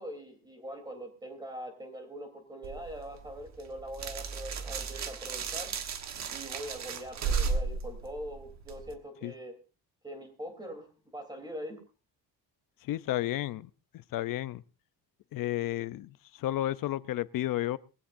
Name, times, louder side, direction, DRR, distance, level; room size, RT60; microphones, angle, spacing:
voice 1, 0.0-5.7 6.3-9.5 10.0-10.9 11.1-11.8, equal, 10° right, 3.3 m, -42 dB
sound 1, 2.6-8.9, right 5 dB, 45° right, 1.3 m, -35 dB
voice 2, 12.8-14.6 15.3-17.8, left 14 dB, 60° left, 0.6 m, -32 dB
20.5 x 15.5 x 2.6 m
cardioid pair, 170°, 39 cm